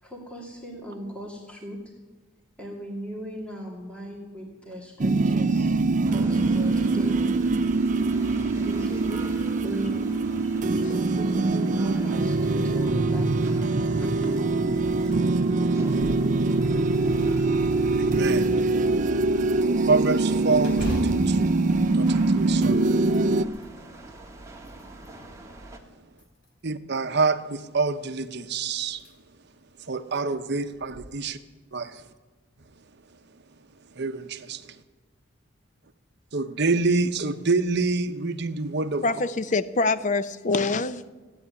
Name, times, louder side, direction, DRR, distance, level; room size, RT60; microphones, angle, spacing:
voice 1, 0.0-1.9 2.6-5.8 6.1-7.4 8.5-10.2 10.9-13.3 13.8-14.4 14.9-15.1, equal, 5° left, 2.5 m, -38 dB
sound 1, 5.0-23.4, right 3 dB, 40° right, 0.5 m, -23 dB
sound 2, 6.0-25.8, right 2 dB, 15° right, 1.5 m, -45 dB
sound 3, 15.9-16.3 16.7-16.8 17.4-18.2 20.6-22.6 23.0-23.7 24.4-25.2 26.1-26.8 28.3-28.4 28.9-29.1 29.6-29.7 30.7-31.0, equal, 60° left, 4.1 m, -37 dB
voice 2, 18.0-18.5 19.8-21.5 21.9-22.9 26.6-29.0 29.9-31.4 31.7-32.0 34.0-34.8 36.3-39.0, right 4 dB, 55° right, 0.9 m, -26 dB
voice 3, 39.0-41.1, left 3 dB, 40° left, 0.6 m, -25 dB
15.0 x 8.8 x 9.5 m
head